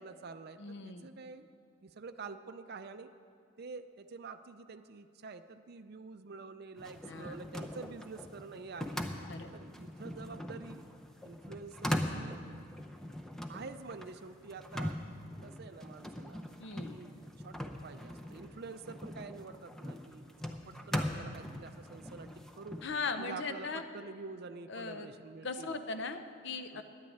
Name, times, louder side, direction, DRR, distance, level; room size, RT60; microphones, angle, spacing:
voice 1, 0.0-1.5 1.8-3.1 3.6-9.0 9.5-10.8 11.2-12.4 13.5-15.0 15.4-16.4 16.8-17.1 17.4-22.8 23.2-25.8 26.7-26.8, right 4 dB, 50° right, 8 dB, 0.5 m, -47 dB
voice 2, 0.6-1.1 7.1-7.4 9.3-9.5 16.6-17.0 22.8-23.8 24.7-25.1 25.4-26.8, left 4 dB, 55° left, 8 dB, 0.7 m, -39 dB
sound 1, 6.8-23.0, left 1 dB, ahead, 0.6 m, -41 dB
10.5 x 9.4 x 8.6 m, 2.4 s
head